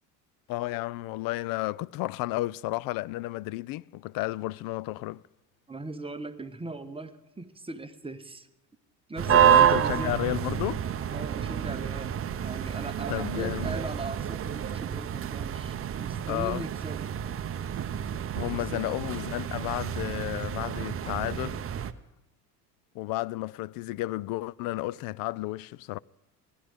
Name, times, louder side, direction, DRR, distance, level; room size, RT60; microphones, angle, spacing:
voice 1, 0.5-5.2 9.3-10.8 13.1-13.7 16.3-16.6 18.4-21.6 22.9-26.0, left 18 dB, 50° left, 0.4 m, -32 dB
voice 2, 5.7-8.5 9.1-10.2 11.1-17.2 18.5-18.8, right 2 dB, 10° right, 1.0 m, -39 dB
sound 1, 9.2-21.9, right 10 dB, 30° right, 0.7 m, -28 dB
18.0 x 11.5 x 3.6 m
hypercardioid pair, 70°, 48 cm